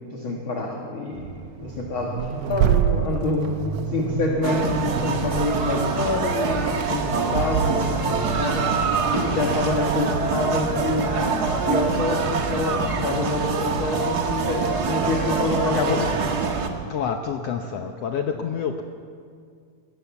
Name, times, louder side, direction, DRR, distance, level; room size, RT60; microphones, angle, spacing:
voice 1, 0.0-3.5 3.9-8.7 9.1-11.2 11.6-16.2, left 2 dB, 45° left, -1 dB, 2.2 m, -27 dB
Accelerating revving vroom, 1.1-16.9, right 10 dB, 80° right, 1.8 m, -30 dB
sound 1, 4.4-16.7, right 4 dB, 55° right, 1.0 m, -25 dB
voice 2, 15.7-16.1 16.9-18.8, left 7 dB, 85° left, 5 dB, 1.4 m, -27 dB
20.5 x 18.0 x 7.2 m, 2.3 s
omnidirectional pair, 4.0 m